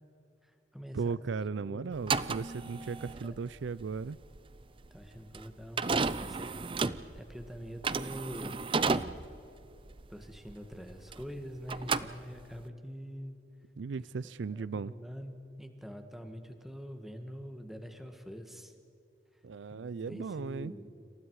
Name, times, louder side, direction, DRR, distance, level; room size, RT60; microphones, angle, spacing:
voice 1, 0.4-1.2 1.6-2.3 3.2-3.4 4.9-6.5 6.8-8.6 10.1-13.4 14.2-18.7 19.7-20.9, equal, ahead, 5 dB, 1.7 m, -45 dB
voice 2, 0.9-4.2 13.8-14.9 19.4-20.7, right 5 dB, 75° right, 18 dB, 0.4 m, -36 dB
sound 1, 1.9-11.4 11.7-12.7, right 4 dB, 25° right, 0.5 m, -33 dB
30.0 x 28.0 x 4.8 m, 2.8 s
head